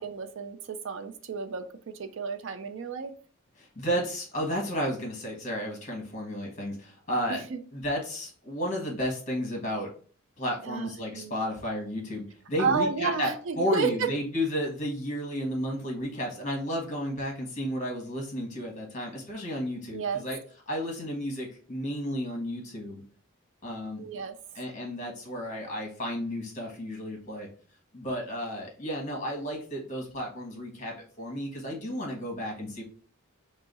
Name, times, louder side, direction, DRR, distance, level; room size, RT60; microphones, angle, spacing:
voice 1, 0.0-1.6 2.0-3.1 7.3-7.6 10.6-11.4 12.6-14.1 19.9-20.2 24.0-24.4, right 5 dB, 60° right, 9 dB, 0.4 m, -31 dB
voice 2, 3.6-7.4 7.7-9.9 10.4-20.4 20.7-23.0 23.6-24.0 24.5-27.5 27.9-32.8, equal, 35° left, 0 dB, 1.3 m, -32 dB
4.5 x 2.0 x 4.0 m, 0.42 s
head